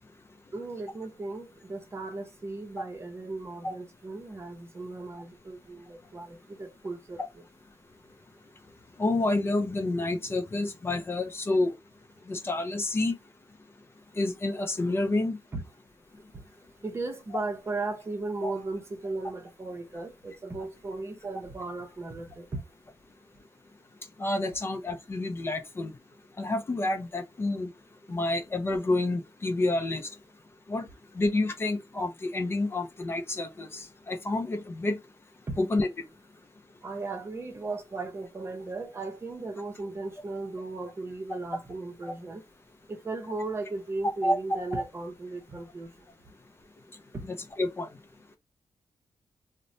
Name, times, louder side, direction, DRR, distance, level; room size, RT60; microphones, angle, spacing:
voice 1, 0.5-7.4 15.5-15.6 16.3-16.4 16.8-22.5 35.5-35.6 36.8-42.4 42.9-46.1 47.1-47.2, right 3 dB, 30° right, 0.7 m, -36 dB
voice 2, 9.0-11.7 12.3-13.1 14.2-15.4 18.4-18.5 24.2-25.9 26.4-27.7 28.1-30.0 30.7-30.8 31.2-35.0 35.6-35.9 41.3-41.4 42.1-42.2 44.2-44.8 47.2-47.9, left 2 dB, 30° left, 0.5 m, -29 dB
2.9 x 2.1 x 2.6 m
cardioid pair, 110°, 8 cm